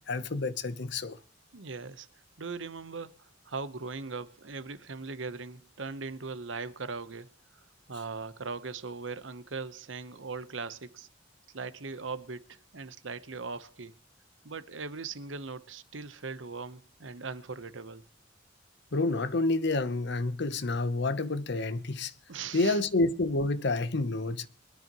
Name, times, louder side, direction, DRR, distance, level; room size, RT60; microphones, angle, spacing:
voice 1, 0.1-1.2 18.9-22.1 22.5-24.5, left 2 dB, 65° left, 0.9 m, -29 dB
voice 2, 1.5-2.1 2.4-7.3 7.9-11.1 11.5-13.9 14.4-18.0 22.3-22.8, right 4 dB, 85° right, 1.0 m, -39 dB
24.0 x 10.5 x 3.1 m
head